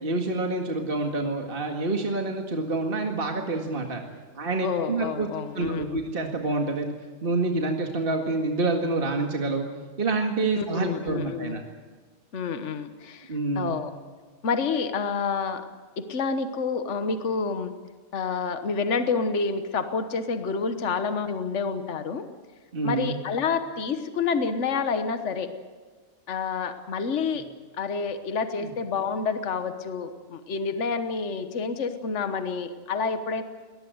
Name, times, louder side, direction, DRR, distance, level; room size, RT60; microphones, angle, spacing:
voice 1, 0.0-4.0 4.3-5.3 5.5-6.9 7.2-9.7 10.0-11.6 13.3-13.8 22.7-23.2 28.5-28.7, right 2 dB, 40° right, 3 dB, 2.1 m, -27 dB
voice 2, 4.6-6.0 10.6-11.6 12.3-13.9 14.4-15.6 16.0-17.7 18.1-22.2 22.8-25.5 26.3-27.4 27.8-33.4, left 5 dB, 60° left, 9 dB, 1.6 m, -28 dB
22.5 x 19.5 x 8.0 m, 1.5 s
omnidirectional pair, 1.4 m